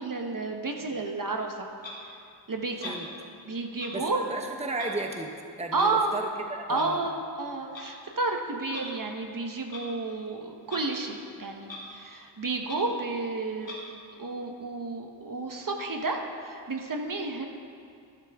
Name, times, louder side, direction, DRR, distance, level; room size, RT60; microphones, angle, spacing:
voice 1, 0.0-1.7 2.5-3.0 3.5-4.2 5.7-6.2 6.7-13.8 14.2-17.4, right 3 dB, 45° right, 3 dB, 1.3 m, -31 dB
Clock, 1.8-2.0 2.8-3.0 3.8-3.9 4.7-4.9 5.7-5.9 6.7-6.9 7.6-7.9 8.7-8.9 9.7-9.9 10.6-10.8 11.2-11.3 11.6-11.8 12.2-12.3 12.6-12.8 13.6-13.8, left 3 dB, 80° left, 2.4 m, -41 dB
voice 2, 3.9-5.3 5.6-7.0, right 2 dB, 15° right, 3 dB, 1.0 m, -34 dB
12.0 x 11.5 x 3.7 m, 2.3 s
cardioid pair, 45°, 45 cm